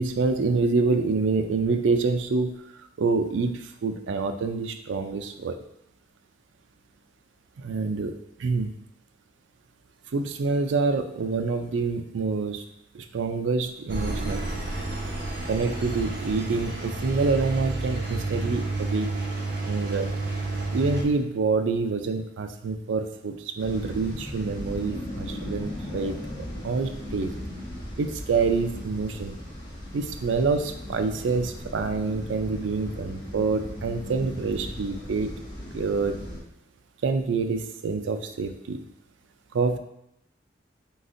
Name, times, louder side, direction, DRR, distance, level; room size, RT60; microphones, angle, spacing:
voice 1, 0.0-2.6 3.0-5.6 7.6-8.7 10.1-12.6 12.9-14.4 15.5-19.2 19.7-20.1 20.7-26.2 26.6-27.4 28.0-29.4 29.9-35.3 35.7-36.2 37.0-38.8 39.5-39.8, right 4 dB, 85° right, 7 dB, 0.4 m, -26 dB
Engine, 13.9-21.0, right 2 dB, 60° right, 1.0 m, -30 dB
sound 1, 23.6-36.4, left 1 dB, 25° left, 1.0 m, -37 dB
4.2 x 3.9 x 2.5 m, 0.79 s
head